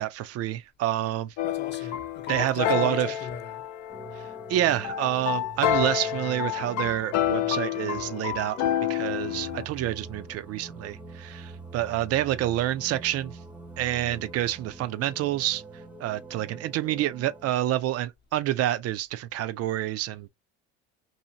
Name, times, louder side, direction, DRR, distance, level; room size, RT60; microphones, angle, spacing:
voice 1, 0.0-1.3 2.3-3.1 4.5-8.6 8.9-13.4 13.8-15.6 16.0-20.3, right 13 dB, 50° right, 0.5 m, -28 dB
sound 1, 1.4-9.6, left 11 dB, 65° left, 0.6 m, -29 dB
voice 2, 1.4-3.7, left 7 dB, 35° left, 0.7 m, -37 dB
sound 2, 3.9-17.5, right 3 dB, 5° right, 0.6 m, -44 dB
2.7 x 2.7 x 2.8 m
supercardioid pair, 95°, 31 cm